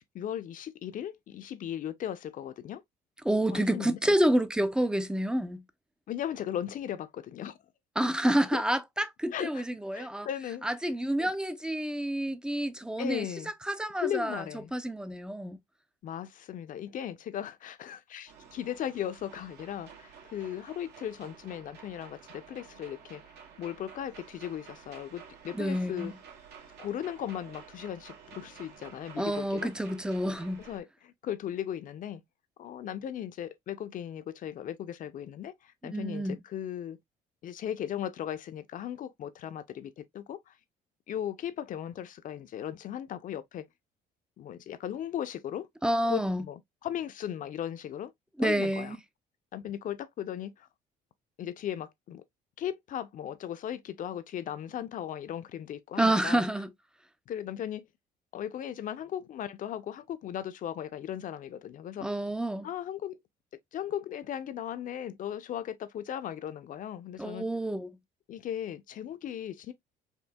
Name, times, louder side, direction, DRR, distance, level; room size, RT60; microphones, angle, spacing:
voice 1, 0.0-2.8 3.5-4.0 6.1-7.6 9.3-9.7 9.9-10.7 11.2-11.3 13.0-13.5 14.0-14.7 16.0-23.2 23.6-26.1 26.8-29.7 30.6-32.2 32.6-37.0 37.4-40.5 41.1-43.7 44.4-45.7 46.0-48.1 48.4-49.0 49.5-50.7 51.4-52.2 52.6-56.4 57.3-57.9 58.3-62.1 62.6-63.2 63.7-67.5 68.3-69.7, left 10 dB, 50° left, 0.6 m, -37 dB
voice 2, 3.2-5.6 8.0-10.3 10.6-13.3 13.6-14.4 14.7-15.6 25.5-26.1 29.2-30.6 35.8-36.4 45.8-46.4 48.4-49.0 56.0-56.7 62.0-62.7 67.2-67.9, right 1 dB, 5° right, 0.4 m, -28 dB
sound 1, 18.3-30.8, right 7 dB, 80° right, 1.4 m, -51 dB
4.4 x 2.7 x 2.2 m
cardioid pair, 110°, 17 cm